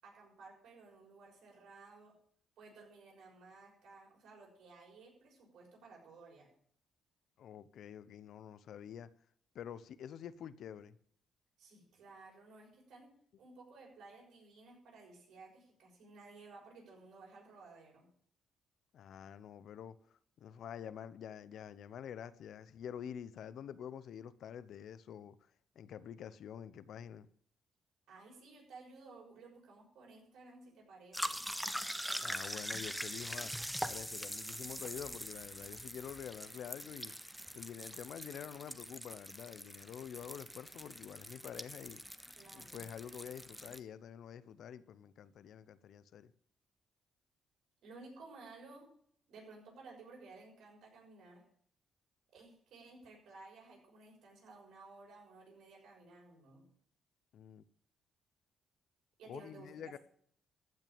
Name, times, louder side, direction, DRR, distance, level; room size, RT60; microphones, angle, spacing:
voice 1, 0.0-2.2 2.6-6.5 11.6-18.1 28.1-31.5 42.3-42.8 47.8-48.9 49.3-51.4 52.3-56.7 59.2-60.0, right 3 dB, 75° right, 6.3 m, -56 dB
voice 2, 7.4-9.1 9.5-11.0 18.9-20.0 20.4-25.4 25.8-27.3 32.2-33.5 33.8-37.1 37.5-42.0 42.5-46.3 57.3-57.6 59.2-60.0, left 9 dB, 70° left, 0.7 m, -47 dB
sound 1, 31.1-43.8, equal, ahead, 0.9 m, -43 dB
14.5 x 6.2 x 8.7 m
cardioid pair, 90°, 0 cm